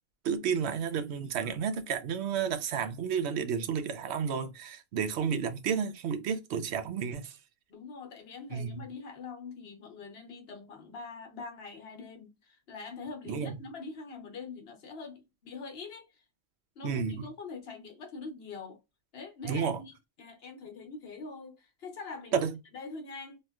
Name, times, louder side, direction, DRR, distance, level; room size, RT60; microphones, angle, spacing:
voice 1, 0.2-7.3 8.5-8.8 13.3-13.5 16.8-17.2 19.5-19.8 22.3-22.5, right 7 dB, 80° right, 0.9 m, -31 dB
voice 2, 7.7-16.2 16.8-18.8 19.1-22.5 22.7-23.4, left 4 dB, 70° left, 1.1 m, -44 dB
3.1 x 2.8 x 2.2 m
omnidirectional pair, 1.1 m